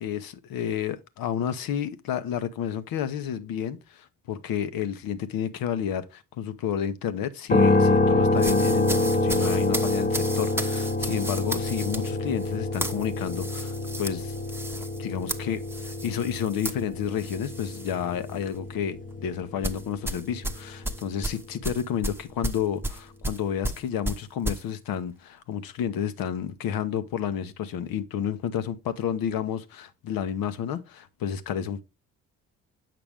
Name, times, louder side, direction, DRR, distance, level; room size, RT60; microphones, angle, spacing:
voice 1, 0.0-14.3 15.0-31.8, left 8 dB, 60° left, 0.8 m, -31 dB
sound 1, 7.5-21.5, left 2 dB, 20° left, 0.9 m, -27 dB
sound 2, 8.4-18.0 18.3-18.6 19.6-24.6, right 1 dB, 5° right, 0.9 m, -34 dB
7.6 x 5.9 x 3.4 m
hypercardioid pair, 45°, 40 cm